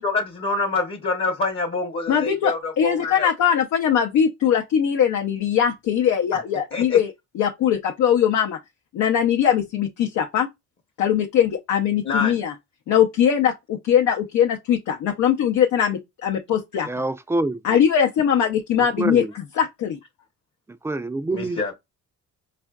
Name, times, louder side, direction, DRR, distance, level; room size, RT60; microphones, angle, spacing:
voice 1, 0.0-3.3 6.7-7.0 12.0-12.4 21.3-21.7, left 3 dB, 40° left, 0.9 m, -26 dB
voice 2, 2.1-7.1 7.4-8.6 8.9-10.5 11.0-12.5 12.9-16.9 17.6-19.2 19.6-20.0, left 9 dB, 75° left, 0.6 m, -21 dB
voice 3, 16.8-17.8 18.8-19.3 20.8-21.6, right 2 dB, 10° right, 0.3 m, -26 dB
4.3 x 2.5 x 2.3 m
cardioid pair, 90°, 30 cm